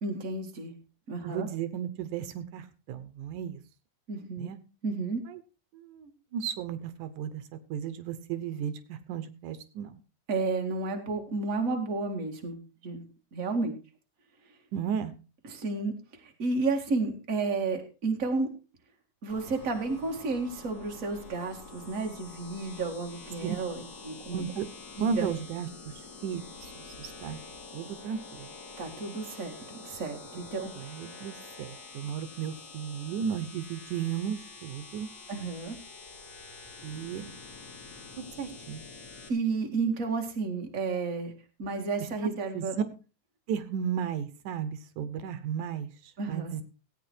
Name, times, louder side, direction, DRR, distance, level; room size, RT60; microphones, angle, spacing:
voice 1, 0.0-0.7 1.1-1.5 4.1-4.5 4.8-5.2 10.3-12.6 12.8-13.0 13.3-13.7 15.5-16.0 16.2-18.5 19.2-24.4 25.0-25.3 28.8-30.9 35.3-35.8 39.3-41.3 41.6-42.8 46.2-46.6, right 3 dB, 30° right, 2 dB, 2.0 m, -32 dB
voice 2, 1.2-3.6 4.4-4.6 5.3-5.4 5.7-7.4 7.7-10.0 14.7-15.1 23.4-23.6 24.3-24.7 25.0-25.9 26.2-26.4 26.7-27.4 27.7-28.5 30.7-35.1 36.8-37.3 38.2-38.8 42.5-42.8 43.5-45.9 46.3-46.6, right 8 dB, 85° right, 13 dB, 2.5 m, -34 dB
sound 1, 19.3-39.3, left 4 dB, 40° left, 3.1 m, -47 dB
16.0 x 8.8 x 4.5 m, 0.33 s
omnidirectional pair, 3.5 m